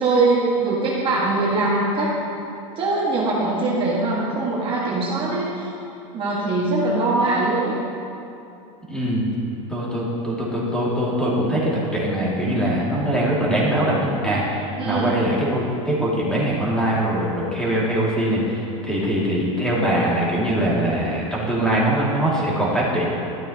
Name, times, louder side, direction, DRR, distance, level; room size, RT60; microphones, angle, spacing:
voice 1, 0.0-2.1 2.8-5.7 6.1-7.7 14.8-15.2, right 2 dB, 30° right, -6 dB, 1.7 m, -22 dB
voice 2, 8.9-9.3 9.7-23.1, right 1 dB, 5° left, -7 dB, 2.4 m, -22 dB
12.5 x 8.6 x 2.9 m, 2.7 s
supercardioid pair, 120°, 17 cm